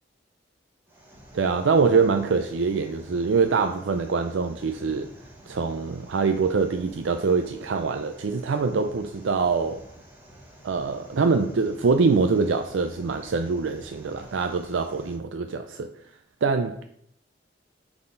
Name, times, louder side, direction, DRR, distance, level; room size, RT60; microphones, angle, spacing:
sound 1, 0.9-15.2, equal, 10° right, 1.7 m, -49 dB
voice 1, 1.3-5.1 5.5-9.8 10.6-15.9 16.4-16.8, right 4 dB, 80° right, 0.5 m, -24 dB
9.5 x 4.1 x 3.8 m
head